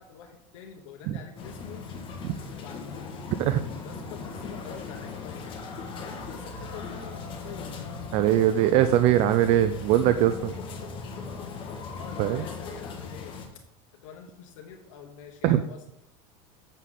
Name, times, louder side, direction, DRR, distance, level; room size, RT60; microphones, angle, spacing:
voice 1, 0.0-1.8 2.6-3.1 3.8-8.1 12.0-13.6 13.9-15.9, left 7 dB, 85° left, 1 dB, 1.1 m, -46 dB
sound 1, 1.4-13.5, left 4 dB, 30° left, 1.4 m, -38 dB
voice 2, 8.1-10.6 12.2-12.4 15.4-15.6, right 12 dB, 40° right, 11 dB, 0.4 m, -21 dB
8.1 x 6.5 x 3.7 m, 0.81 s
supercardioid pair, 160°, 16 cm